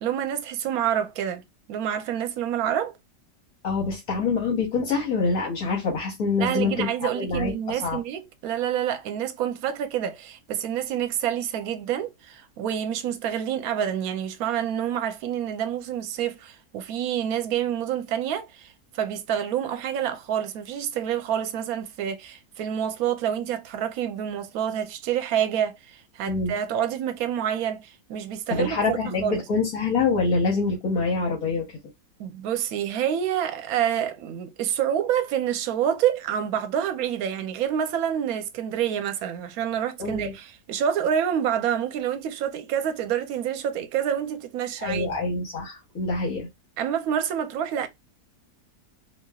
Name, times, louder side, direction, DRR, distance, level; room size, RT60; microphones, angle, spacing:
voice 1, 0.0-1.4 1.7-2.9 6.4-29.4 32.2-45.1 46.8-47.9, right 9 dB, 70° right, 1.0 m, -27 dB
voice 2, 3.6-8.0 26.2-26.5 28.5-31.6 40.0-40.3 44.8-46.5, left 4 dB, 65° left, 1.4 m, -26 dB
3.0 x 2.7 x 2.3 m
omnidirectional pair, 1.7 m